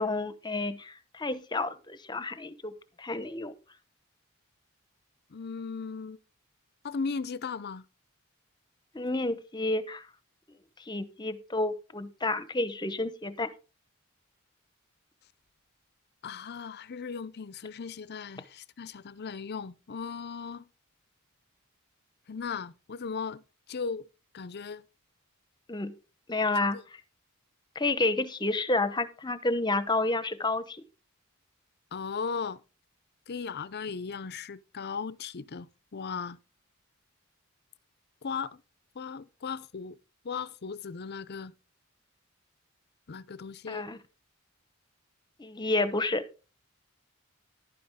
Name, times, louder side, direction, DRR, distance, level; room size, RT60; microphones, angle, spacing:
voice 1, 0.0-3.5 8.9-10.0 10.9-13.5 25.7-25.9 26.3-27.0 27.7-30.8 43.7-44.0 45.4-46.2, left 2 dB, 20° left, 0.9 m, -30 dB
voice 2, 5.3-6.2 6.8-7.9 16.2-20.6 22.3-23.4 23.7-24.1 24.3-24.8 31.9-32.6 33.3-36.4 38.2-38.6 38.9-40.0 40.2-41.5 43.1-43.9, left 5 dB, 50° left, 0.6 m, -37 dB
11.5 x 9.5 x 3.6 m
head